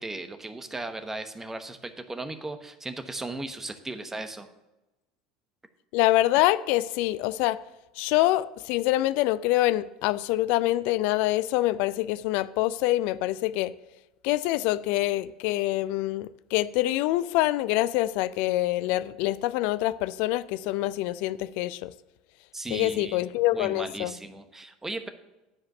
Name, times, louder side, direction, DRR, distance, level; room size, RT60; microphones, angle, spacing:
voice 1, 0.0-4.5 22.5-23.2 23.5-25.1, right 2 dB, 15° right, 1.0 m, -36 dB
voice 2, 5.9-7.6 8.0-13.7 14.2-21.9 22.7-24.1, left 16 dB, 60° left, 0.4 m, -25 dB
10.0 x 5.1 x 6.6 m
hypercardioid pair, 75°, 3 cm